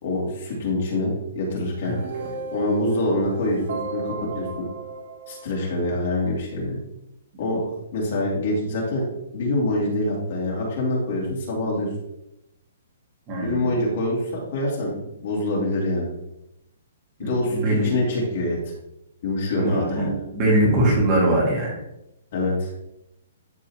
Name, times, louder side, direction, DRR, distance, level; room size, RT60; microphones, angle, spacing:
voice 1, 0.0-1.9 2.5-4.5 5.3-6.8 7.4-7.6 7.9-9.1 9.3-11.9 13.4-14.9 15.2-16.1 17.2-18.6 19.2-20.2 22.3-22.7, left 1 dB, 40° left, -4 dB, 2.5 m, -25 dB
sound 1, 1.7-6.0, right 3 dB, 55° right, 1.1 m, -34 dB
voice 2, 13.3-13.7 17.2-17.9 19.6-20.1 20.3-21.7, right 1 dB, 25° right, -3 dB, 1.9 m, -22 dB
12.0 x 4.0 x 3.0 m, 0.88 s
hypercardioid pair, 175°, 0 cm